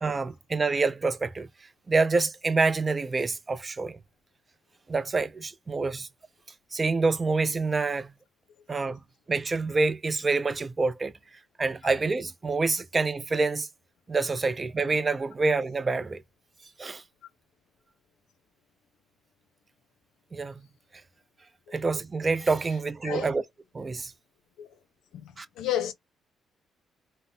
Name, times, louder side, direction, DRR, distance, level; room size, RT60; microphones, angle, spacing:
voice 1, 0.0-1.5 1.9-4.0 4.9-6.1 6.7-8.1 8.7-9.0 9.3-11.1 11.6-13.7 14.1-16.2 16.8-17.0 20.3-20.6 21.7-23.4 23.7-24.1 25.4-25.5, right 3 dB, 30° right, 0.4 m, -27 dB
voice 2, 25.1-25.9, left 12 dB, 85° left, 0.5 m, -32 dB
3.8 x 2.0 x 2.6 m
cardioid pair, 90°, 0 cm